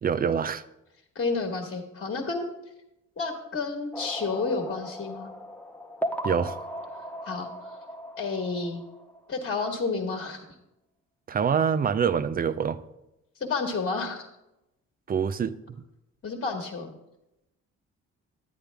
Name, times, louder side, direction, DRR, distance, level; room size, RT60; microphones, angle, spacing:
voice 1, 0.0-0.6 6.2-6.6 11.3-12.8 15.1-15.8, right 7 dB, 30° right, 13 dB, 0.4 m, -26 dB
voice 2, 1.1-2.4 3.2-5.3 7.2-7.7 8.2-8.8 9.3-10.4 13.4-14.3 16.2-16.9, left 4 dB, 40° left, 3 dB, 1.3 m, -30 dB
sound 1, 3.9-9.3, equal, 5° left, 0.8 m, -37 dB
10.0 x 9.1 x 3.4 m, 0.89 s
cardioid pair, 90°, 30 cm